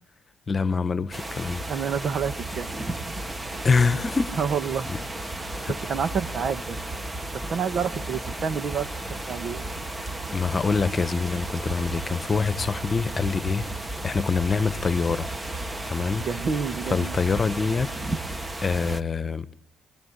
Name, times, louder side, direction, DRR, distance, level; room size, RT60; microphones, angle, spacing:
voice 1, 0.5-1.7 3.6-4.4 4.9-5.0 5.4-5.8 10.3-13.7 14.0-15.3 15.9-16.2 16.9-17.9 18.6-19.5, left 4 dB, 35° left, 1.4 m, -25 dB
sound 1, 1.1-19.0, right 2 dB, 15° right, 2.1 m, -34 dB
voice 2, 1.7-2.7 3.0-3.1 4.4-4.9 5.9-6.8 7.3-9.6 16.2-17.1, right 6 dB, 55° right, 1.9 m, -29 dB
28.0 x 21.0 x 10.0 m
cardioid pair, 85°, 0 cm